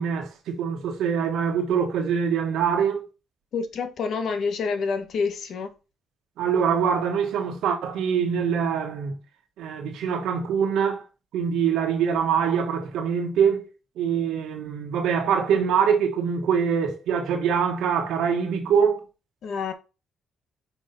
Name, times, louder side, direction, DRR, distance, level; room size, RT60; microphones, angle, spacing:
voice 1, 0.0-3.0 6.4-9.1 9.6-11.0 11.3-13.7 14.0-19.0, right 7 dB, 85° right, 1.3 m, -24 dB
voice 2, 3.5-5.7 19.4-19.7, left 5 dB, 65° left, 1.3 m, -28 dB
5.4 x 5.1 x 4.0 m
cardioid pair, 90°, 0 cm